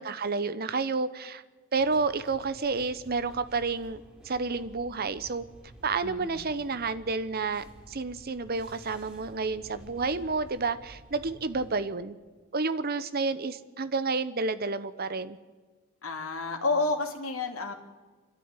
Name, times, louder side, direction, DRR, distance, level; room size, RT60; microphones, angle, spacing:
voice 1, 0.0-1.4 1.7-5.4 5.8-12.2 12.5-15.4, right 4 dB, 45° right, 13 dB, 0.9 m, -30 dB
sound 1, 1.7-11.8, right 1 dB, 5° right, 3.2 m, -52 dB
voice 2, 6.0-6.4 16.0-17.7, left 3 dB, 75° left, 3 dB, 2.4 m, -30 dB
26.5 x 12.5 x 9.8 m, 1.4 s
head